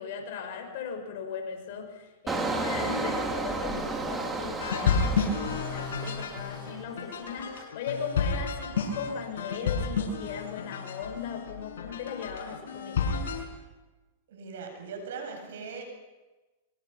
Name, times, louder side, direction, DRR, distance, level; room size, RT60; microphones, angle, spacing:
voice 1, 0.0-13.1, left 6 dB, 60° left, 4 dB, 5.9 m, -37 dB
Engine, 2.3-6.9 7.3-7.6, right 3 dB, 15° right, 3.2 m, -33 dB
sound 1, 4.6-13.4, left 5 dB, 80° left, 6.6 m, -31 dB
voice 2, 14.3-15.8, right 5 dB, 75° right, 3 dB, 7.9 m, -39 dB
24.0 x 23.5 x 5.9 m, 1.2 s
hypercardioid pair, 130°, 0 cm